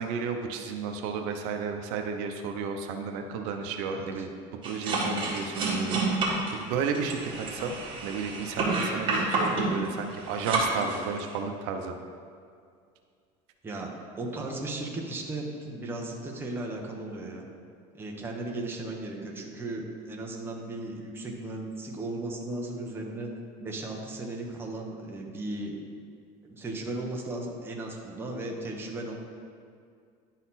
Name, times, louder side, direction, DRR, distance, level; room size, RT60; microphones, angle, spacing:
voice 1, 0.0-4.3 4.6-6.0 6.5-7.8 8.0-11.9, right 5 dB, 80° right, 4 dB, 0.7 m, -32 dB
voice 2, 3.8-4.3 13.6-17.5 17.9-23.3 23.6-25.8 26.4-29.1, right 2 dB, 15° right, -1 dB, 0.9 m, -36 dB
sound 1, 4.6-11.4, right 3 dB, 35° right, 1.9 m, -29 dB
11.0 x 4.1 x 4.1 m, 2.2 s
cardioid pair, 150°, 15 cm